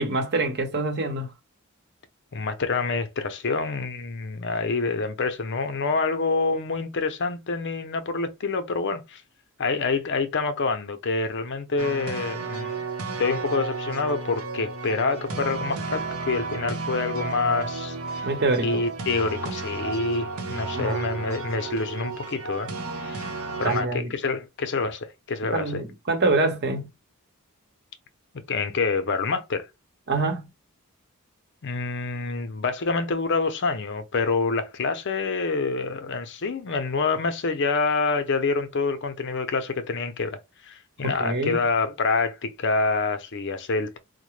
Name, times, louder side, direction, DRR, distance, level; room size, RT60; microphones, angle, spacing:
voice 1, 0.0-1.3 18.2-18.8 20.7-21.4 23.6-24.1 25.5-26.9 30.1-30.5 41.0-41.6, right 2 dB, 50° right, 0.9 m, -26 dB
voice 2, 2.3-9.2 9.6-12.9 13.2-18.3 18.6-22.7 23.0-23.3 23.6-25.8 28.5-29.7 31.6-40.4 40.6-44.0, left 4 dB, 55° left, 0.6 m, -27 dB
sound 1, 11.8-23.8, right 4 dB, 85° right, 0.8 m, -33 dB
4.6 x 2.1 x 3.1 m
head